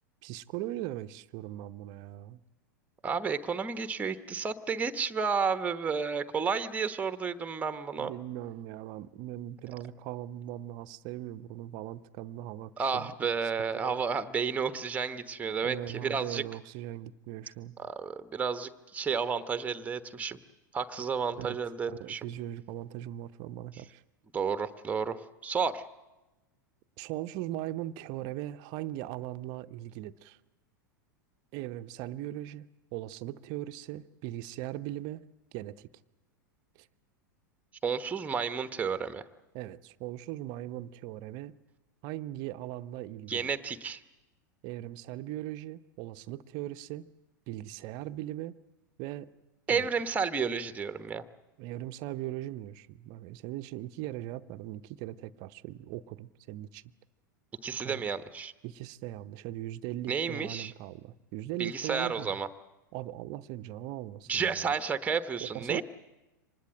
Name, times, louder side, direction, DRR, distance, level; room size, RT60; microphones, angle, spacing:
voice 1, 0.2-2.4 8.0-13.1 13.4-14.0 15.6-17.8 21.4-21.6 21.9-24.0 27.0-30.4 31.5-35.2 35.5-35.9 36.8-36.9 39.5-41.5 42.0-43.5 44.6-47.0 47.5-48.6 49.0-49.3 49.7-49.9 51.6-56.8 57.8-58.0 58.6-62.4 62.9-64.7 65.4-65.8, right 14 dB, 40° right, 0.7 m, -39 dB
voice 2, 3.0-8.1 12.8-16.4 17.8-20.4 20.7-22.3 24.3-25.8 37.8-39.2 43.3-44.0 49.7-51.2 57.6-58.5 60.1-60.7 61.6-62.5 64.3-65.8, right 5 dB, 15° right, 1.1 m, -31 dB
25.0 x 20.0 x 7.7 m
figure-of-eight pair, 90°, 11 cm